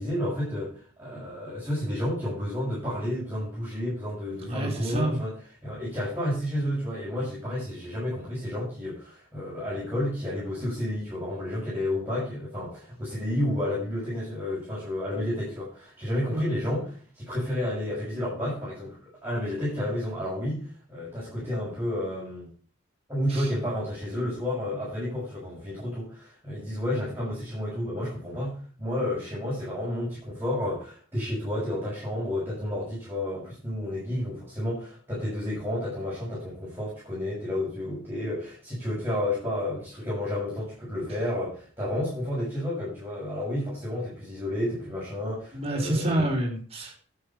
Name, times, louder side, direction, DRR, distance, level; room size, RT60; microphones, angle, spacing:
voice 1, 0.0-5.4 5.6-22.5 23.1-46.3, left 1 dB, 10° right, -9 dB, 6.8 m, -31 dB
voice 2, 4.4-5.2 16.3-16.5 23.3-23.5 45.5-46.9, right 1 dB, 30° right, 0 dB, 3.8 m, -28 dB
12.0 x 8.4 x 4.6 m, 0.43 s
head